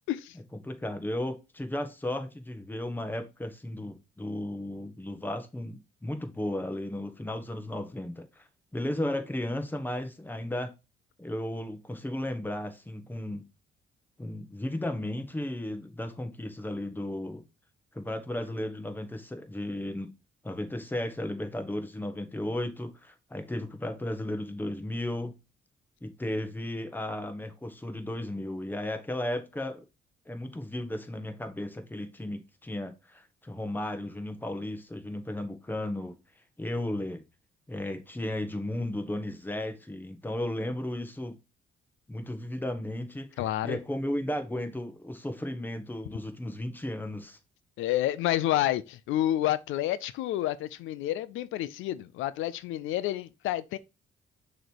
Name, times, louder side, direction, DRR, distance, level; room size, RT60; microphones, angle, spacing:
voice 1, 0.6-8.5 8.7-10.7 11.2-13.4 14.2-17.4 17.9-20.1 20.4-25.4 26.0-29.8 30.3-36.1 36.6-37.2 37.7-41.4 42.1-47.4, left 1 dB, 10° left, 1.2 m, -34 dB
voice 2, 43.4-43.8 47.8-53.8, left 13 dB, 85° left, 0.5 m, -29 dB
6.4 x 3.2 x 4.5 m
cardioid pair, 90°, 20 cm